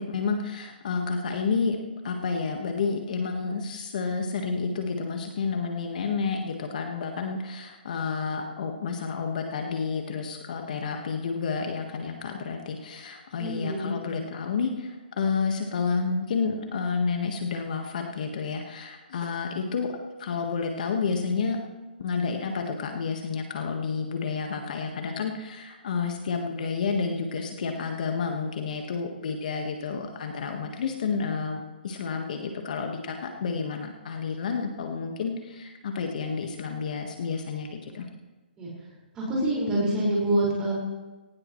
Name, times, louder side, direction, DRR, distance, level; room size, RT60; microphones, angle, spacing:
voice 1, 0.0-1.8 2.0-21.6 22.0-38.1, left 5 dB, 50° left, 3 dB, 1.5 m, -30 dB
voice 2, 13.4-13.9 38.6-38.7 39.1-40.7, right 1 dB, 15° right, -5 dB, 5.2 m, -26 dB
18.0 x 17.5 x 3.2 m, 1.2 s
hypercardioid pair, 165°, 6 cm